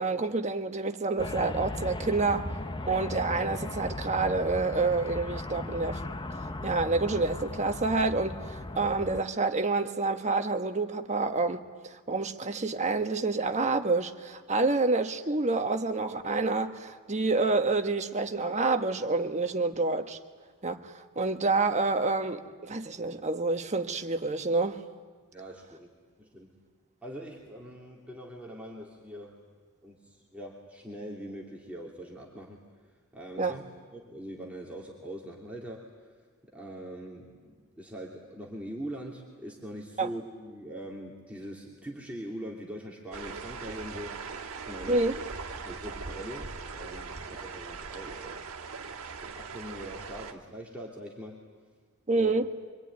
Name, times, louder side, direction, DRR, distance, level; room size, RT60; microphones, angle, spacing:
voice 1, 0.0-2.5 2.9-6.0 6.6-20.2 20.6-24.8 33.4-33.6 40.0-40.1 44.9-45.1 52.1-52.5, right 3 dB, 30° right, 1.3 m, -28 dB
sound 1, 1.2-9.2, left 2 dB, 20° left, 0.8 m, -37 dB
voice 2, 25.3-25.9 26.2-26.6 27.0-29.4 29.8-32.6 33.1-33.6 33.9-36.1 36.5-45.1 45.6-48.4 49.2-51.4 52.1-52.3, right 1 dB, 5° right, 2.9 m, -42 dB
sound 2, 43.1-50.3, right 4 dB, 70° right, 1.8 m, -40 dB
25.0 x 24.5 x 9.5 m
head